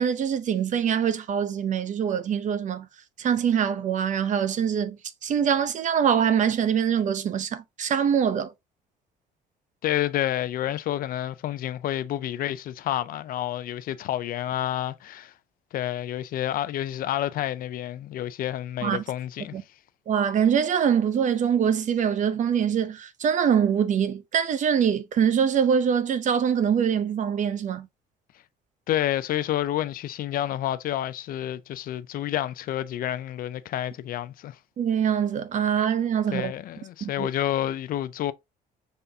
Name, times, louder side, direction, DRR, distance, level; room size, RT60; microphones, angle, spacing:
voice 1, 0.0-2.9 3.2-5.0 5.2-8.5 18.8-19.0 19.5-19.6 20.1-27.9 34.8-36.5 37.0-37.3, right 8 dB, 45° right, 0.7 m, -24 dB
voice 2, 9.8-15.3 15.7-19.6 28.9-34.6 36.3-38.3, left 12 dB, 60° left, 0.5 m, -29 dB
5.5 x 3.4 x 2.7 m
cardioid pair, 110°, 17 cm